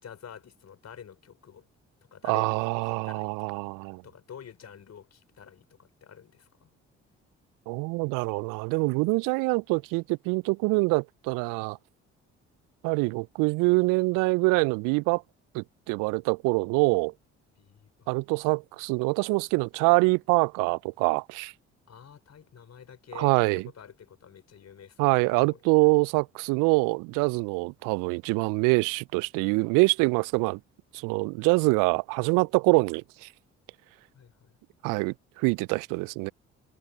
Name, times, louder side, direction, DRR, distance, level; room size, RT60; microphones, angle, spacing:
voice 1, 0.0-1.6 2.1-3.6 4.0-6.7 17.6-18.1 21.9-25.6 34.1-34.6, left 8 dB, 50° left, 5.3 m, -48 dB
voice 2, 2.2-4.0 7.7-11.8 12.8-15.2 15.5-17.1 18.1-21.5 23.2-23.7 25.0-30.6 30.9-33.3 34.8-36.3, right 27 dB, 70° right, 0.5 m, -25 dB
hypercardioid pair, 50°, 34 cm